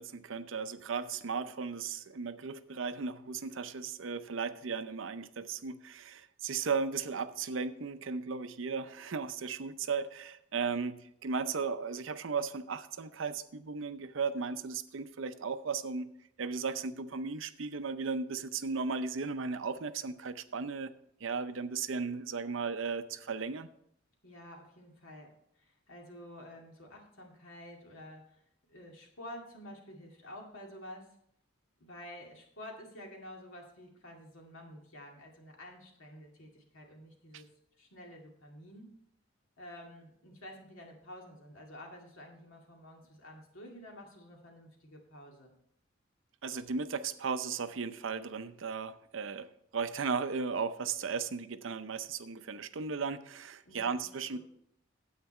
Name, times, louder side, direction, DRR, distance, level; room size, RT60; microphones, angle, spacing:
voice 1, 0.0-16.1 16.4-20.9 21.2-23.7 37.3-37.4 46.4-54.4, right 5 dB, 75° right, 12 dB, 0.6 m, -36 dB
voice 2, 24.2-28.4 28.7-31.1 31.8-37.5 37.8-38.9 39.6-45.5 53.7-54.0 54.3-54.4, left 1 dB, 80° left, 0 dB, 2.3 m, -50 dB
9.6 x 8.0 x 4.3 m, 0.72 s
head